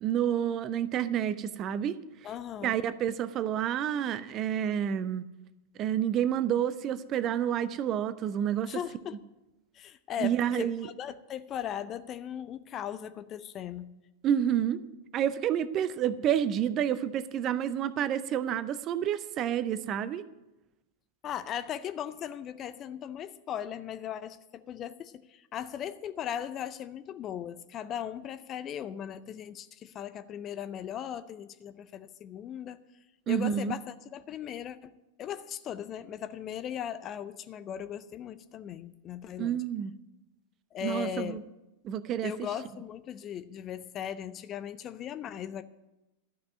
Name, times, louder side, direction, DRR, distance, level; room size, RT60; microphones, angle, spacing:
voice 1, 0.0-2.0 2.6-5.2 5.8-8.8 10.2-10.9 14.2-14.8 15.1-20.2 33.3-33.7 39.4-39.9 40.8-41.4 41.8-42.3, right 9 dB, 35° right, 0.6 m, -29 dB
voice 2, 2.2-2.8 8.7-9.2 9.7-13.9 21.2-32.8 33.3-39.6 40.7-41.4 42.2-45.6, left 9 dB, 30° left, 0.6 m, -38 dB
12.5 x 6.0 x 9.5 m
figure-of-eight pair, 90°, 0 cm